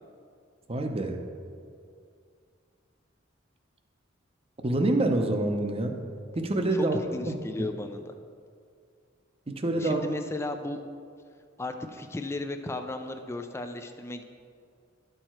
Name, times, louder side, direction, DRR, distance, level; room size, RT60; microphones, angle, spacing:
voice 1, 0.7-1.2 4.6-6.0 6.4-7.0 7.3-7.4 9.5-10.1, right 2 dB, 30° right, 5 dB, 0.7 m, -26 dB
voice 2, 6.7-8.1 9.8-10.8 11.6-14.2, left 2 dB, 15° left, 6 dB, 0.3 m, -35 dB
12.0 x 4.7 x 4.4 m, 2.3 s
head